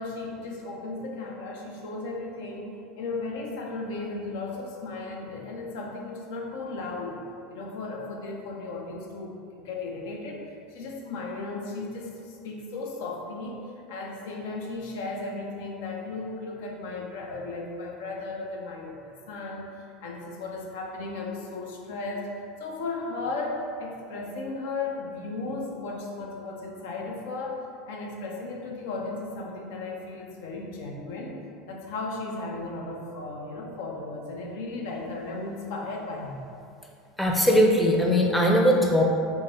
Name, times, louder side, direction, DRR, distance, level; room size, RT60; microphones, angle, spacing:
voice 1, 0.0-7.2 7.5-13.6 13.9-19.7 20.0-22.3 22.6-31.4 31.7-36.4, left 3 dB, 75° left, 0 dB, 0.6 m, -35 dB
voice 2, 37.2-39.0, equal, 5° left, -1 dB, 0.5 m, -20 dB
3.7 x 2.0 x 4.2 m, 2.5 s
supercardioid pair, 115°, 0 cm